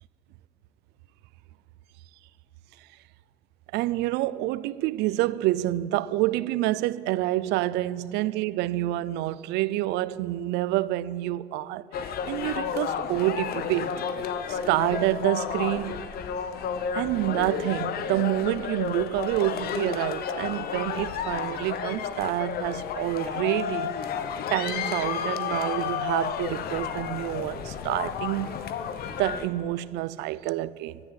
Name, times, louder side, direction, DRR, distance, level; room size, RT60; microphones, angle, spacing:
voice 1, 3.7-14.0 14.5-16.1 16.9-23.9 24.5-28.5 29.2-31.0, right 16 dB, 90° right, 0.4 m, -28 dB
sound 1, 11.9-29.5, left 7 dB, 65° left, 0.9 m, -32 dB
12.0 x 9.7 x 8.2 m
cardioid pair, 110°, 17 cm